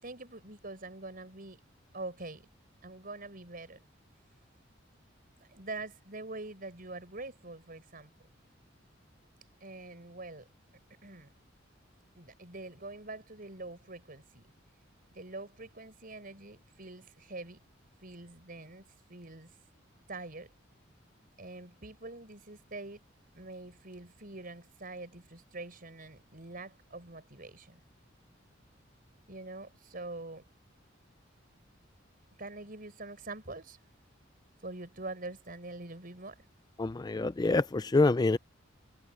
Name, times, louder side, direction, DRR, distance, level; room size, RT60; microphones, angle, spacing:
voice 1, 0.0-1.6 1.9-2.5 2.8-3.9 5.4-8.1 9.6-10.5 11.0-11.3 12.2-14.4 15.1-17.6 18.0-19.5 20.1-20.5 21.4-23.0 23.3-27.8 29.3-30.5 32.4-33.8 34.6-36.4, right 2 dB, 45° right, 5.6 m, -44 dB
voice 2, 36.8-38.4, left 3 dB, 20° left, 0.4 m, -26 dB
head